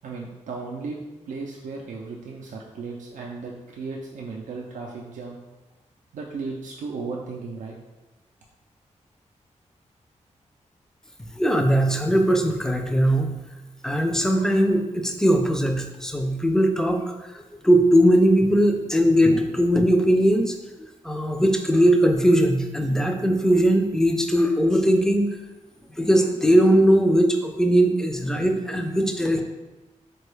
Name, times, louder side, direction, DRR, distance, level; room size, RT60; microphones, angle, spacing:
voice 1, 0.0-1.0 1.3-5.4 6.1-7.8, right 4 dB, 80° right, -1 dB, 0.4 m, -35 dB
voice 2, 11.4-13.3 13.8-17.0 17.3-25.3 26.0-29.4, equal, 5° left, 4 dB, 0.4 m, -20 dB
3.7 x 2.2 x 3.1 m, 1.1 s
cardioid pair, 85°, 13 cm